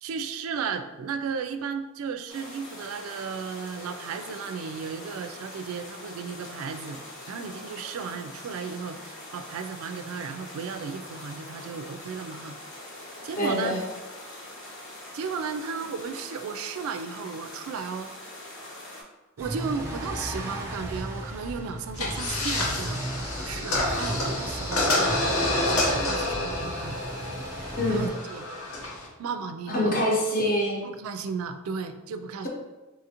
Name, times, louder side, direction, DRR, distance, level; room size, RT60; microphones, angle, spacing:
voice 1, 0.0-7.0 7.3-12.6 13.2-13.7 15.1-18.1 19.4-23.0 23.4-27.0 27.9-28.5 29.2-30.0 30.8-32.5, right 5 dB, 70° right, 8 dB, 0.3 m, -35 dB
sound 1, 2.3-19.0, left 1 dB, 60° left, 1.1 m, -43 dB
voice 2, 13.4-13.8 27.8-28.1 29.7-30.8, equal, 40° left, -3 dB, 0.8 m, -25 dB
sound 2, 19.4-28.1, right 1 dB, 10° right, 0.6 m, -35 dB
sound 3, 21.9-29.1, left 1 dB, 90° left, 0.8 m, -28 dB
4.0 x 2.5 x 2.8 m, 1.1 s
head